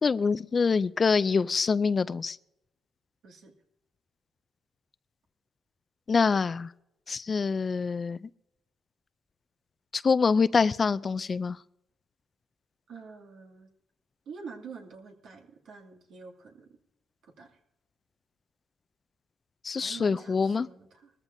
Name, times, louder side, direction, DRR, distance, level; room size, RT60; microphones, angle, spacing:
voice 1, 0.0-2.4 6.1-6.7 7.1-8.2 9.9-11.6 19.6-20.7, left 5 dB, 35° left, 0.4 m, -25 dB
voice 2, 12.9-13.7 14.3-16.8 17.2-17.6 19.7-21.1, right 5 dB, 70° right, 2.4 m, -47 dB
21.0 x 14.0 x 2.7 m
cardioid pair, 90°, 0 cm